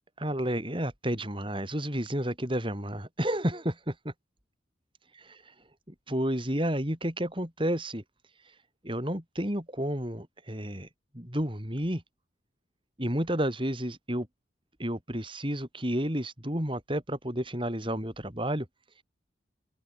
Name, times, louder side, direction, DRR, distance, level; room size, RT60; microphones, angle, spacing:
voice 1, 0.2-3.9 5.4-5.5 5.9-8.0 8.8-10.9 11.1-12.0 13.0-14.3 14.8-18.7, equal, 25° right, 5.8 m, -31 dB
open air
head